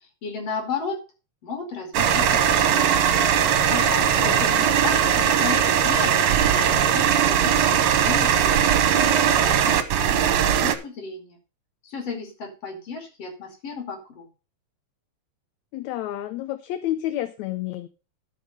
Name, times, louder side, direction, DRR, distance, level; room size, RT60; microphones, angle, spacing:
voice 1, 0.2-1.0 1.4-3.0 3.7-4.5 4.8-6.2 6.5-11.4 11.8-14.3, left 5 dB, 55° left, 2 dB, 3.7 m, -34 dB
sound 1, 1.9-10.8, right 8 dB, 70° right, 2.0 m, -20 dB
voice 2, 4.1-4.7 15.7-17.9, left 13 dB, 80° left, 10 dB, 1.9 m, -30 dB
13.0 x 5.8 x 5.3 m, 0.33 s
omnidirectional pair, 3.3 m